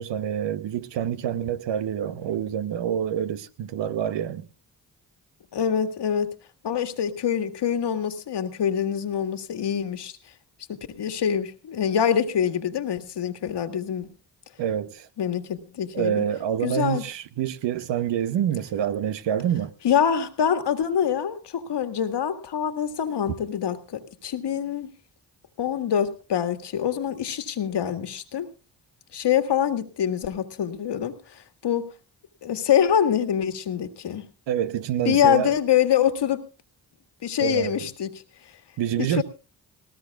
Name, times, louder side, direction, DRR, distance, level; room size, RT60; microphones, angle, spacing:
voice 1, 0.0-4.5 14.6-15.1 15.9-19.7 34.5-35.5 37.4-37.8 38.8-39.2, right 9 dB, 70° right, 1.0 m, -27 dB
voice 2, 5.5-6.3 6.6-10.1 10.7-14.1 15.2-16.2 16.6-17.0 19.8-24.9 25.6-28.5 29.1-31.9 32.4-34.3 35.1-36.4 37.2-38.1 39.0-39.2, left 9 dB, 60° left, 1.8 m, -25 dB
19.5 x 18.5 x 2.4 m
hypercardioid pair, 40°, 45 cm